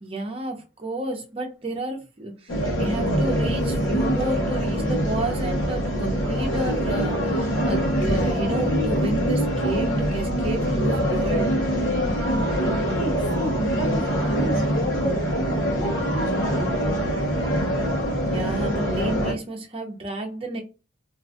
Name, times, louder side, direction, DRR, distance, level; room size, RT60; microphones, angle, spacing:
voice 1, 0.0-11.5 18.1-20.6, right 2 dB, 30° right, 0.8 m, -31 dB
sound 1, 2.5-19.3, equal, 70° left, 1.0 m, -24 dB
voice 2, 12.8-16.7, right 1 dB, 45° left, 1.0 m, -32 dB
2.5 x 2.4 x 3.5 m
head